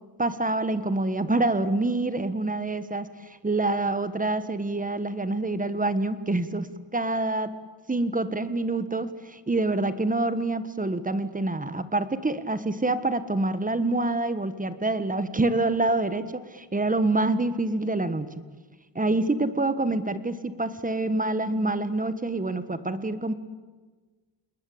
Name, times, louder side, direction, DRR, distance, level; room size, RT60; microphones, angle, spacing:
voice 1, 0.2-7.5 7.9-18.3 18.9-23.3, right 2 dB, 15° right, 12 dB, 1.4 m, -26 dB
28.5 x 20.5 x 8.7 m, 1.3 s
cardioid pair, 115°, 46 cm